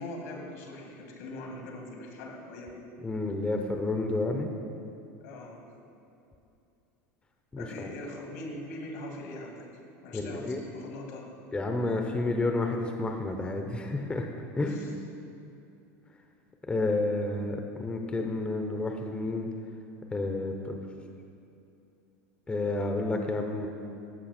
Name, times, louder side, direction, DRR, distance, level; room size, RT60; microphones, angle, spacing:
voice 1, 0.0-2.8 5.2-5.7 7.6-11.3 14.7-15.0, left 1 dB, 85° left, 1 dB, 2.2 m, -42 dB
voice 2, 3.0-4.5 7.5-7.9 10.1-10.6 11.5-14.3 14.6-14.8 16.7-19.5 20.1-20.8 22.5-23.7, left 2 dB, 15° left, 3 dB, 0.8 m, -30 dB
14.0 x 5.9 x 4.3 m, 2.7 s
supercardioid pair, 115°, 8 cm